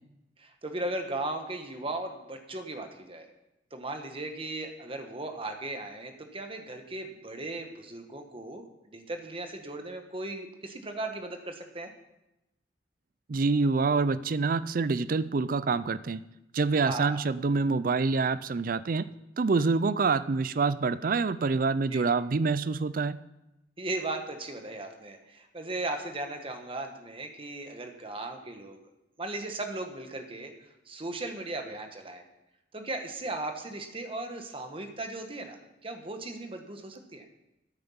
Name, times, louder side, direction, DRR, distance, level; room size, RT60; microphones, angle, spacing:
voice 1, 0.4-3.3 3.7-8.6 8.9-11.9 16.8-17.2 21.9-22.0 23.8-28.8 29.2-30.5 30.9-32.2 32.7-35.6 35.8-37.2, right 2 dB, 30° right, 5 dB, 1.3 m, -37 dB
voice 2, 13.3-16.2 16.5-19.1 19.4-23.2, right 4 dB, 50° right, 16 dB, 0.4 m, -26 dB
9.7 x 9.0 x 7.1 m, 0.92 s
head